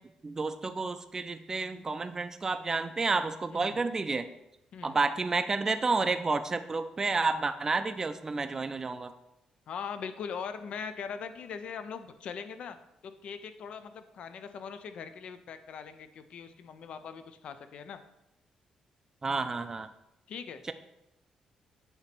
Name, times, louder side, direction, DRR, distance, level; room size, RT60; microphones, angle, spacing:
voice 1, 0.2-4.3 4.8-9.1 19.2-19.9, right 3 dB, 25° right, 10 dB, 0.5 m, -30 dB
voice 2, 9.7-12.8 13.0-18.0 20.3-20.6, left 6 dB, 65° left, 10 dB, 0.5 m, -41 dB
8.8 x 2.9 x 5.9 m, 0.84 s
cardioid pair, 125°, 2 cm